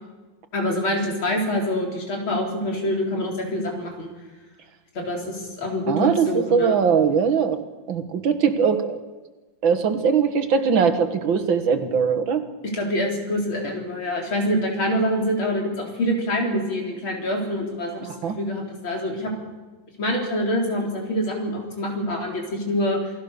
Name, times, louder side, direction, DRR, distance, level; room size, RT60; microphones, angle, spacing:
voice 1, 0.5-4.1 4.9-6.8 12.7-18.1 18.4-19.3 20.0-23.1, left 1 dB, 85° left, 0 dB, 5.0 m, -25 dB
voice 2, 5.9-7.6 7.9-9.0 9.6-12.4 18.1-18.4, right 6 dB, 75° right, 9 dB, 2.2 m, -21 dB
28.5 x 19.0 x 6.8 m, 1.3 s
omnidirectional pair, 2.2 m